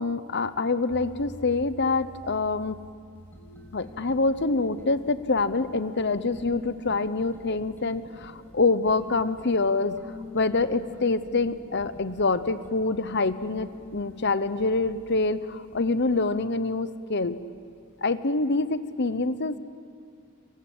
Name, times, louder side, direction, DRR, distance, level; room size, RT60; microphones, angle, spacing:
voice 1, 0.0-2.8 3.7-10.0 10.3-17.4 18.0-19.6, left 3 dB, 50° left, 13 dB, 0.9 m, -26 dB
sound 1, 0.9-16.3, left 1 dB, 10° left, 5.1 m, -47 dB
26.5 x 24.0 x 8.8 m, 2.2 s
head